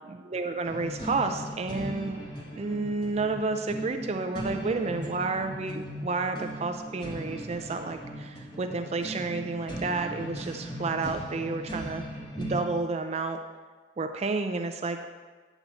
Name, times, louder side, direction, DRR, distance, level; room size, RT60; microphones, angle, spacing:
voice 1, 0.1-2.2 2.6-12.0 12.4-13.4 14.0-15.1, right 3 dB, 35° right, 7 dB, 0.4 m, -31 dB
sound 1, 0.6-12.7, equal, 25° left, 1.5 m, -38 dB
9.4 x 7.0 x 4.1 m, 1.4 s
head